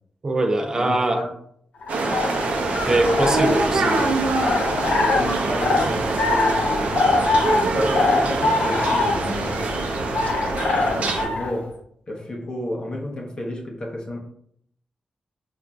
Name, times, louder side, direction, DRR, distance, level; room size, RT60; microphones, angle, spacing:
voice 1, 0.2-1.2 2.9-4.1, right 2 dB, 30° right, 3 dB, 0.3 m, -22 dB
voice 2, 0.7-1.3 5.1-7.0 7.5-9.6 10.8-11.7 12.1-14.2, left 1 dB, 40° left, -1 dB, 0.6 m, -31 dB
sound 1, 1.8-11.6, left 3 dB, 85° left, 0.4 m, -24 dB
sound 2, 1.9-11.3, right 3 dB, 80° right, 0.5 m, -24 dB
3.9 x 2.5 x 2.2 m, 0.69 s
wide cardioid pair, 150°, 2 cm